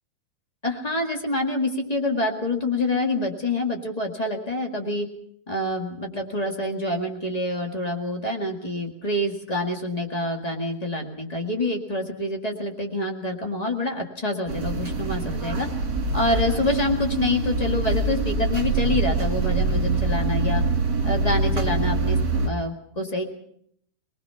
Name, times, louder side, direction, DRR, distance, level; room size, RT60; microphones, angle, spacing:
voice 1, 0.6-5.1 5.5-15.7 16.1-20.6 21.0-23.2, left 1 dB, 45° left, 3 dB, 0.4 m, -26 dB
sound 1, 14.5-22.5, right 3 dB, 30° right, 2.6 m, -24 dB
25.5 x 20.0 x 5.8 m, 0.67 s
omnidirectional pair, 4.5 m